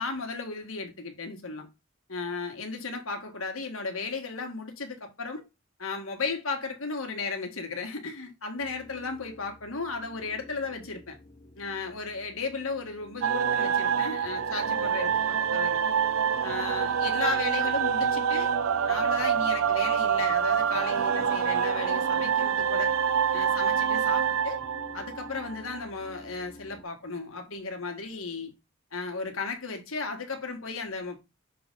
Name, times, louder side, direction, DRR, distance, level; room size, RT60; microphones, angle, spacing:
voice 1, 0.0-1.7 2.1-5.4 5.8-11.2 11.6-16.0 16.4-18.5 18.9-22.9 23.3-24.6 24.9-28.5 28.9-31.2, left 4 dB, 90° left, 1.9 m, -35 dB
sound 1, 8.6-26.8, left 2 dB, 30° left, 1.0 m, -51 dB
sound 2, 13.2-25.8, right 7 dB, 80° right, 0.4 m, -26 dB
6.8 x 4.0 x 3.8 m
head